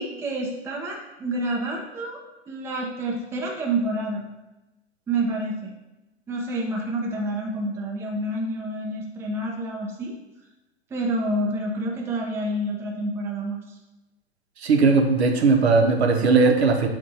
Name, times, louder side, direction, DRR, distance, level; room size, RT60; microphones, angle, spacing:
voice 1, 0.0-2.2 2.5-4.3 5.1-5.7 6.3-10.1 10.9-13.8, right 1 dB, 10° right, -1 dB, 0.5 m, -28 dB
voice 2, 14.6-16.9, right 4 dB, 70° right, 3 dB, 0.8 m, -18 dB
7.3 x 2.5 x 2.7 m, 1.0 s
figure-of-eight pair, 100°, 34 cm